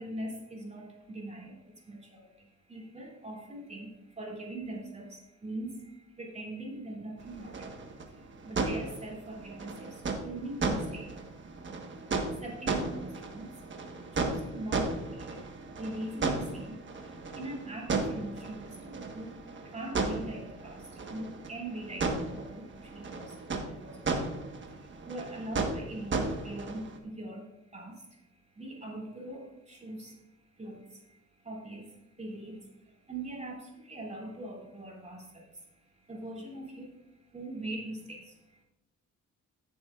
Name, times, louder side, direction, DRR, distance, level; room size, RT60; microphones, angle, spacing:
voice 1, 0.0-1.5 1.9-2.0 2.7-3.9 4.2-5.1 5.4-5.7 6.2-7.5 8.4-9.9 10.2-11.0 12.4-13.5 14.2-15.0 15.3-15.4 15.8-16.8 17.4-19.3 19.7-20.8 21.1-22.1 22.3-22.6 22.9-23.3 23.7-24.0 25.1-27.4 27.7-28.0 28.6-29.4 29.7-30.1 30.6-30.8 31.4-31.8 32.2-32.5 33.1-33.6 33.9-35.2 36.1-36.9 37.3-38.2, right 1 dB, 25° right, -1 dB, 3.0 m, -40 dB
sound 1, 7.2-27.0, right 3 dB, 40° right, 1.4 m, -35 dB
14.5 x 7.1 x 2.5 m, 0.93 s
cardioid pair, 90°, 30 cm